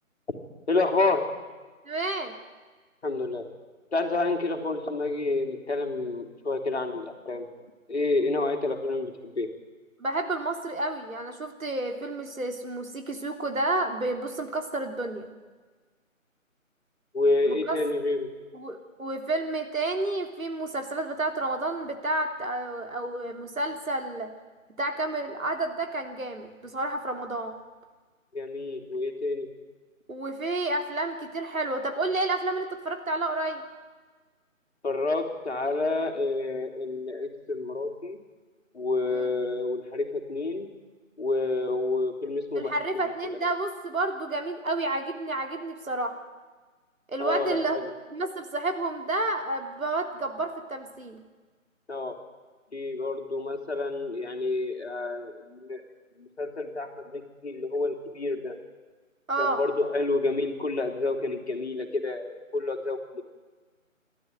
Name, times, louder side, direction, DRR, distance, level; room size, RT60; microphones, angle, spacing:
voice 1, 0.7-1.2 3.0-3.5 3.9-7.5 7.9-9.5 17.1-18.3 28.3-29.5 34.8-38.2 38.7-40.7 41.2-42.7 47.2-47.8 51.9-52.2 52.7-55.8 56.2-58.6 59.4-63.2, left 3 dB, 50° left, 3 dB, 3.0 m, -29 dB
voice 2, 1.9-2.3 10.0-15.3 17.4-17.8 18.5-24.3 24.8-27.5 30.1-33.6 39.1-39.3 42.6-46.2 47.1-47.8 48.1-51.2 59.3-59.6, right 2 dB, 80° right, 5 dB, 3.4 m, -30 dB
27.5 x 12.5 x 9.3 m, 1.4 s
figure-of-eight pair, 165°, 41 cm